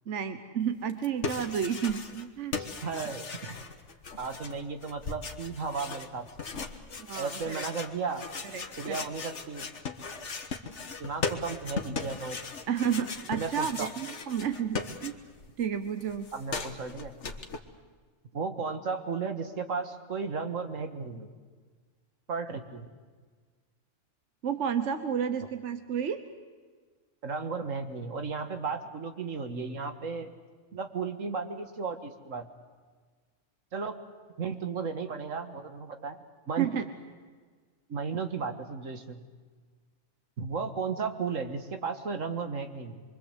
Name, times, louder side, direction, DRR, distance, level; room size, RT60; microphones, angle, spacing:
voice 1, 0.1-2.6 7.0-7.6 8.5-9.0 12.7-15.2 15.6-16.3 24.4-26.2 36.6-36.8, right 8 dB, 65° right, 9 dB, 1.4 m, -31 dB
sound 1, 0.9-2.3 2.5-15.5 15.7-17.6, left 4 dB, 65° left, 1.7 m, -38 dB
voice 2, 2.5-3.6 4.2-6.3 7.2-8.2 8.8-9.7 11.0-12.4 13.4-13.9 16.3-17.1 18.3-21.3 22.3-22.9 27.2-30.3 30.7-32.5 33.7-34.0 34.4-36.7 37.9-39.2 40.4-43.0, right 5 dB, 85° right, 7 dB, 2.0 m, -34 dB
25.0 x 24.0 x 8.2 m, 1.5 s
omnidirectional pair, 1.3 m